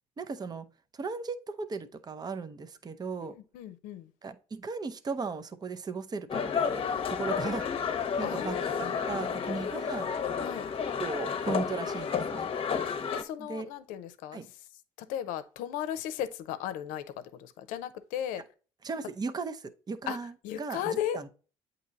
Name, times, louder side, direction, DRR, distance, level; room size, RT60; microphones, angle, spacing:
voice 1, 0.2-0.7 0.9-3.4 4.2-10.1 11.0-12.5 12.8-12.9 13.4-13.7 14.3-14.5 18.8-21.3, right 4 dB, 30° right, 0.6 m, -37 dB
voice 2, 3.2-4.1 8.2-9.5 9.8-10.0 10.4-10.7 13.1-14.4 15.1-18.4 20.1-20.2 20.4-21.2, left 10 dB, 80° left, 0.6 m, -36 dB
sound 1, 6.3-13.2, left 6 dB, 45° left, 0.8 m, -31 dB
8.3 x 2.9 x 3.9 m
supercardioid pair, 70°, 14 cm